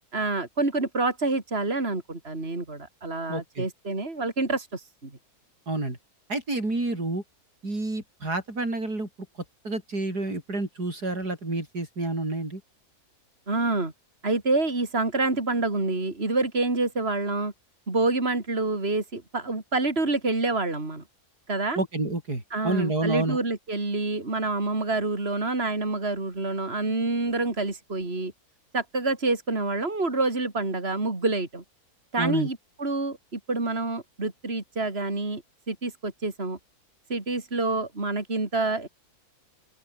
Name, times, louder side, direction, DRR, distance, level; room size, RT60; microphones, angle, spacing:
voice 1, 0.1-5.1 13.5-13.9 14.2-17.5 17.9-21.0 21.5-21.8 22.5-28.3 28.7-31.6 32.1-35.4 35.7-36.6 37.1-38.9, right 3 dB, 40° right, 4.2 m, -27 dB
voice 2, 3.3-3.7 5.7-6.0 6.3-7.2 7.6-9.1 9.6-12.6 21.8-23.4 32.2-32.5, right 2 dB, 85° right, 7.0 m, -29 dB
open air
omnidirectional pair, 1.6 m